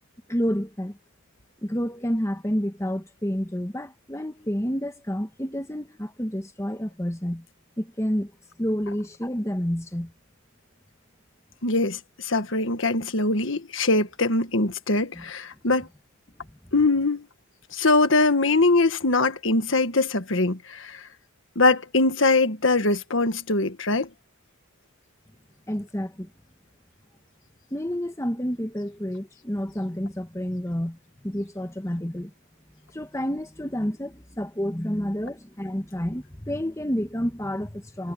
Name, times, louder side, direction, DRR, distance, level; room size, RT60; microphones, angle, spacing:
voice 1, 0.3-1.0 1.6-7.4 7.8-8.3 8.6-10.1 15.1-15.2 25.7-26.3 27.7-32.3 32.9-38.1, equal, 15° left, 1.3 m, -29 dB
voice 2, 11.6-15.9 16.7-17.2 17.7-21.0 21.5-24.1, left 2 dB, 60° left, 1.6 m, -22 dB
head